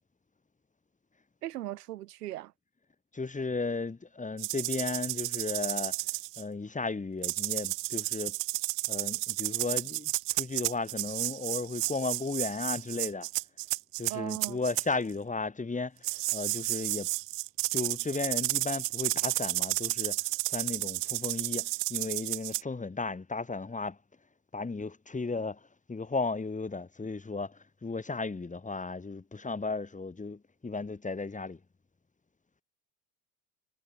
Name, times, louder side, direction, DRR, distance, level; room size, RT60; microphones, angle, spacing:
voice 1, 1.4-2.5 14.1-14.6, right 14 dB, 90° right, 5.3 m, -38 dB
voice 2, 3.1-6.0 6.4-8.4 8.9-13.3 14.0-17.1 17.7-20.2 20.5-24.0 24.5-25.6 25.9-31.6, left 3 dB, 15° left, 3.9 m, -35 dB
sound 1, 4.4-6.4 7.2-14.8 16.0-22.6, right 24 dB, 65° right, 6.2 m, -32 dB
hypercardioid pair, 85°, 45 cm